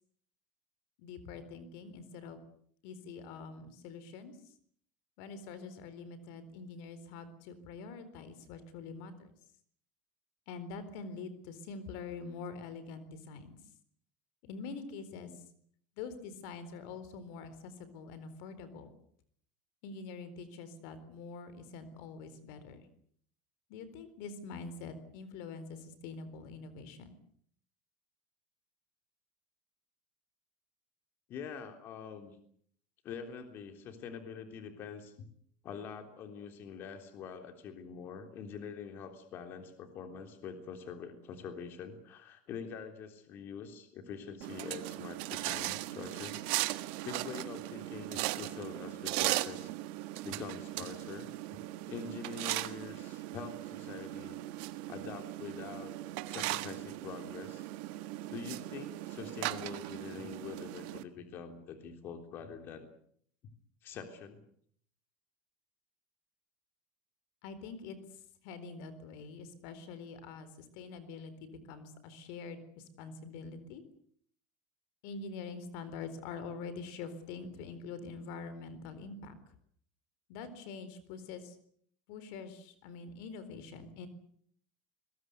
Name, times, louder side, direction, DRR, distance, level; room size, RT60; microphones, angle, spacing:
voice 1, 1.0-2.4 2.8-4.4 5.2-9.3 10.5-13.6 14.4-15.3 16.0-18.9 19.8-22.9 23.7-27.1 67.4-68.0 68.4-73.8 75.0-79.4 80.3-81.6 82.1-84.1, left 4 dB, 70° left, 13 dB, 4.0 m, -45 dB
voice 2, 31.3-32.4 33.0-35.3 35.6-46.5 47.0-49.7 50.2-51.3 51.9-54.4 54.9-55.9 56.3-57.7 58.3-62.9 63.8-64.4, left 6 dB, 45° left, 6 dB, 3.5 m, -45 dB
sound 1, 44.4-61.0, right 18 dB, 70° right, 1.6 m, -38 dB
24.0 x 21.5 x 8.2 m, 0.63 s
supercardioid pair, 135°, 5 cm